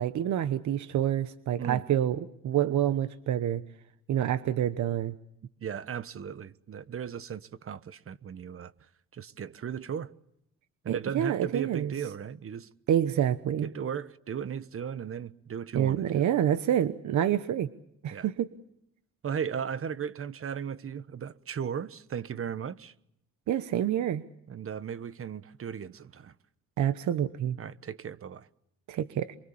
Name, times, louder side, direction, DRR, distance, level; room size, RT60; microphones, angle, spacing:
voice 1, 0.0-3.6 4.1-5.1 10.9-11.9 12.9-13.7 15.7-17.7 18.0-18.5 23.5-24.2 26.8-27.6 28.9-29.4, right 10 dB, 70° right, 1.1 m, -27 dB
voice 2, 5.6-8.7 9.1-10.1 10.8-12.7 13.6-16.2 18.1-18.3 19.2-22.9 24.5-26.3 27.6-28.5, right 8 dB, 45° right, 1.2 m, -36 dB
28.0 x 23.5 x 7.1 m
cardioid pair, 90°, 30 cm